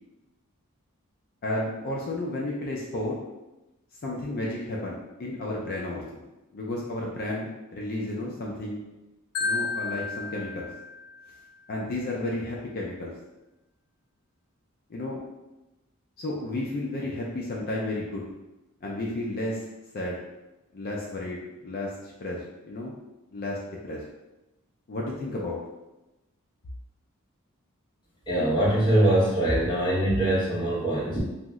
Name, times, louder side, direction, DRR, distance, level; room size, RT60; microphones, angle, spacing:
voice 1, 1.4-3.2 4.0-6.2 6.5-8.8 9.4-10.7 11.7-13.1 14.9-15.2 16.2-18.2 18.8-19.7 19.9-20.2 20.7-22.9 23.3-23.6 23.9-24.0 24.9-25.6, left 1 dB, 45° left, -3 dB, 0.4 m, -32 dB
Marimba xylophone, 9.3-11.4, left 4 dB, 90° left, 0.6 m, -32 dB
voice 2, 28.3-31.2, right 1 dB, 20° left, -7 dB, 0.9 m, -23 dB
2.8 x 2.0 x 3.5 m, 0.99 s
head